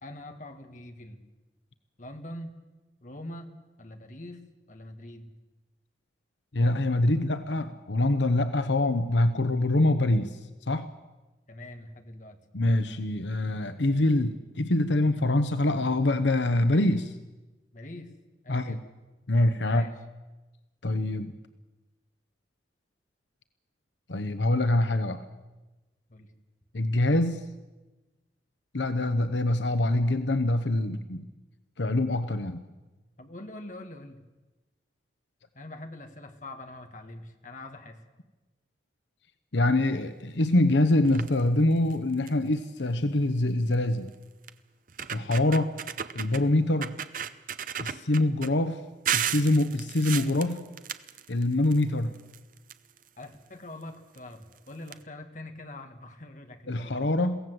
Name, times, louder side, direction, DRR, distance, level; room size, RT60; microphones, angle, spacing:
voice 1, 0.0-1.2 2.0-2.6 3.0-3.5 3.8-4.4 4.7-5.3 11.5-12.4 17.7-18.1 18.4-18.8 19.7-19.9 26.1-26.3 33.2-34.2 35.5-38.0 53.2-57.1, left 1 dB, 45° left, 6 dB, 1.8 m, -43 dB
voice 2, 6.5-10.4 10.7-10.9 12.5-17.1 18.5-18.8 19.3-19.9 20.8-21.3 24.1-25.2 26.7-27.4 28.7-31.2 31.8-32.6 39.5-44.1 45.1-45.7 46.1-47.0 47.8-48.8 49.1-50.7 51.3-52.1 56.7-57.4, left 1 dB, 80° left, 10 dB, 1.0 m, -25 dB
sound 1, 41.0-41.4 41.9-42.0 42.3-42.5 43.7-43.8 44.5-44.6 44.9-46.4 46.8-48.5 49.1-51.8 52.1-53.2 54.1-54.2 54.5-54.6 54.9-55.0, right 9 dB, 45° right, 0.8 m, -34 dB
22.5 x 16.5 x 7.8 m, 1.1 s
head